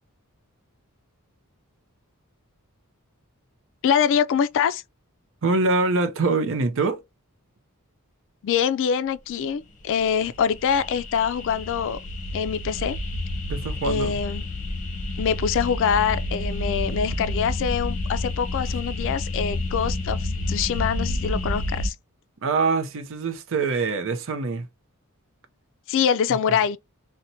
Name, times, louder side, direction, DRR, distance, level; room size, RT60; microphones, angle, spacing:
voice 1, 3.8-4.8 8.4-12.0 12.3-13.0 13.8-14.4 15.2-21.9 25.9-26.8, left 7 dB, 60° left, 0.3 m, -24 dB
voice 2, 5.4-7.0 13.5-14.2 22.4-24.7 26.3-26.4, right 3 dB, 60° right, 0.6 m, -24 dB
sound 1, 9.9-21.9, left 1 dB, 35° left, 0.7 m, -29 dB
4.2 x 2.1 x 2.6 m
head